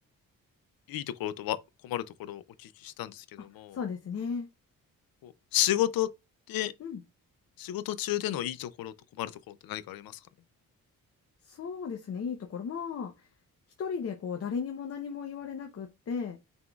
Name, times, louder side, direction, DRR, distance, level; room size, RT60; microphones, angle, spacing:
voice 1, 0.9-1.6 1.8-3.8 5.2-6.1 6.5-6.7 7.6-10.2, left 13 dB, 75° left, 0.5 m, -32 dB
voice 2, 3.7-4.5 6.8-7.0 11.4-13.1 13.8-16.4, left 6 dB, 40° left, 0.7 m, -35 dB
5.9 x 3.6 x 2.3 m
wide cardioid pair, 150°, 35 cm